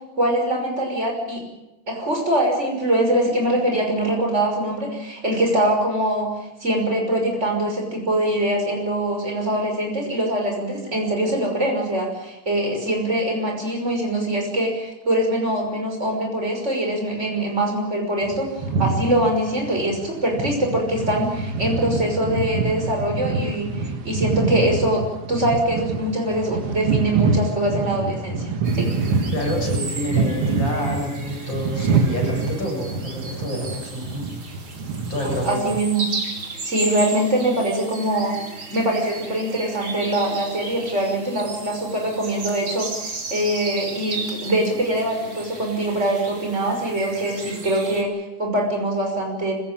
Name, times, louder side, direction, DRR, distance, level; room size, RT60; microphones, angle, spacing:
voice 1, 0.2-1.4 1.9-6.3 6.6-28.9 35.2-36.0 36.6-38.4 38.7-49.5, right 1 dB, 30° right, 2 dB, 6.2 m, -23 dB
sound 1, 18.2-35.8, right 4 dB, 85° right, 2.5 m, -26 dB
sound 2, 28.6-48.0, right 3 dB, 65° right, 3.7 m, -35 dB
voice 2, 29.3-34.3 35.1-35.6, left 1 dB, 60° left, 0 dB, 8.5 m, -28 dB
25.0 x 16.5 x 9.0 m, 0.95 s
omnidirectional pair, 2.4 m